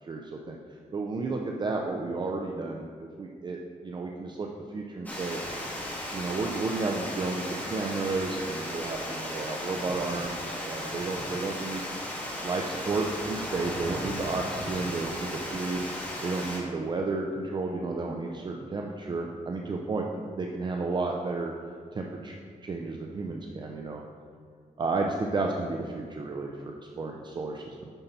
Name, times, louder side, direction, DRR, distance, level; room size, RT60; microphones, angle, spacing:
voice 1, 0.1-0.6 0.9-3.6 3.8-5.4 6.1-11.9 12.4-15.8 16.2-20.1 20.4-21.5 21.9-24.0 24.8-27.9, right 3 dB, 35° right, 1 dB, 0.5 m, -32 dB
Water, 5.1-16.6, left 1 dB, 10° left, 1.6 m, -36 dB
9.1 x 5.7 x 4.1 m, 2.1 s
wide cardioid pair, 140°, 14 cm